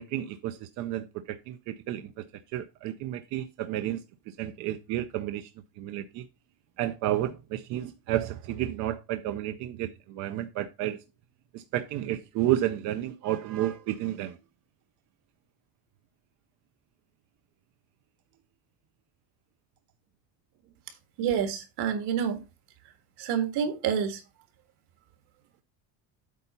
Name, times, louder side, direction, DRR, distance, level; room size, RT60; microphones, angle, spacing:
voice 1, 0.0-6.2 6.8-11.0 11.5-14.4, right 13 dB, 40° right, 0.4 m, -31 dB
voice 2, 21.2-22.4 23.2-24.2, right 8 dB, 60° right, 1.8 m, -28 dB
8.3 x 3.9 x 5.6 m
cardioid pair, 180°, 45 cm